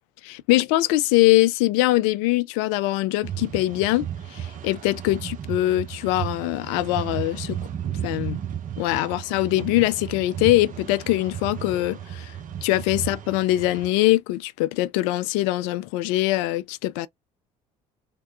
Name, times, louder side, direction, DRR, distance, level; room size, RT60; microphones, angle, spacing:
voice 1, 0.2-7.6 8.0-8.4 8.8-12.3 12.6-17.1, left 17 dB, 80° left, 0.4 m, -22 dB
sound 1, 3.2-13.9, right 9 dB, 55° right, 1.1 m, -34 dB
3.7 x 2.3 x 3.3 m
hypercardioid pair, 60°, 17 cm